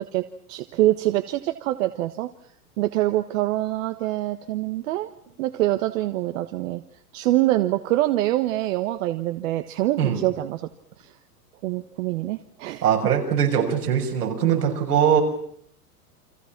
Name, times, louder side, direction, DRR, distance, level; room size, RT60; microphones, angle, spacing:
voice 1, 0.0-2.3 2.8-5.1 5.4-6.8 7.1-10.7 11.0-11.1 11.6-12.9, right 15 dB, 55° right, 9 dB, 1.4 m, -25 dB
voice 2, 12.8-15.2, right 8 dB, 80° right, 2 dB, 6.6 m, -21 dB
30.0 x 24.5 x 6.0 m, 0.64 s
hypercardioid pair, 105°, 46 cm